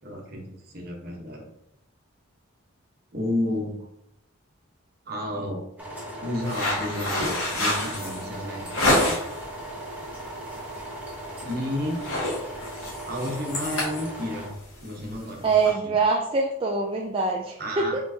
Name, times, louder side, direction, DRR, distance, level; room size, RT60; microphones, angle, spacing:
voice 1, 0.0-1.5 3.1-3.8 5.1-5.6 6.2-9.1 11.4-12.0 13.0-14.5 14.8-15.9 17.6-17.9, left 1 dB, 45° right, 0 dB, 1.0 m, -31 dB
sound 1, 5.8-14.5, right 1 dB, 5° right, 1.0 m, -38 dB
sound 2, 6.4-9.4 9.9-10.2 10.6-10.8 11.1-11.5 11.8-15.7, left 1 dB, 75° left, 1.7 m, -28 dB
voice 2, 15.4-18.0, right 4 dB, 25° right, 0 dB, 0.3 m, -24 dB
4.5 x 3.8 x 2.8 m, 0.82 s
head